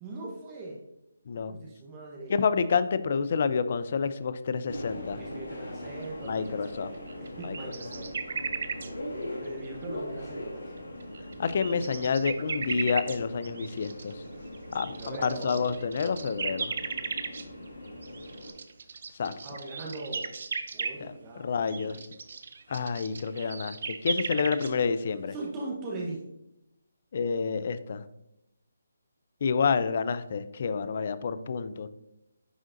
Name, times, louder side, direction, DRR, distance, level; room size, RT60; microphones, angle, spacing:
voice 1, 0.0-0.8 1.5-2.3 5.2-8.1 8.9-10.6 15.0-15.6 19.3-20.3 20.7-22.0 25.3-26.2, right 2 dB, 20° right, -2 dB, 1.0 m, -40 dB
voice 2, 2.3-5.2 6.2-6.9 7.4-7.6 11.4-14.2 14.7-16.7 19.2-19.3 21.0-22.0 22.7-23.8 24.0-25.3 27.1-28.0 29.4-31.9, left 5 dB, 50° left, 14 dB, 0.4 m, -28 dB
Subway metro underground, 4.7-18.5, left 1 dB, 75° left, 1.3 m, -41 dB
sound 1, 6.2-6.7 6.9-8.9 9.7-9.8 11.0-13.2 13.4-14.1 14.5-21.0 21.7-24.7, right 5 dB, 55° right, 0.5 m, -36 dB
10.0 x 3.8 x 2.6 m, 0.86 s
figure-of-eight pair, 155°, 0 cm